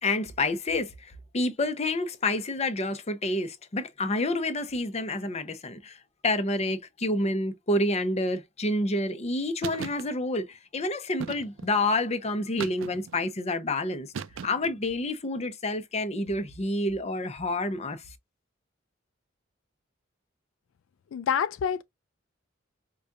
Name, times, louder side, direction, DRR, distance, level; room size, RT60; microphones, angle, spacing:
voice 1, 0.0-14.1 14.4-18.0, left 2 dB, 35° left, 0.7 m, -28 dB
sound 1, 9.6-10.1 11.2-11.8 12.6-13.2 14.1-14.8, right 6 dB, 85° right, 0.4 m, -37 dB
voice 2, 21.1-21.8, left 8 dB, 85° left, 0.3 m, -27 dB
4.9 x 2.3 x 2.6 m
head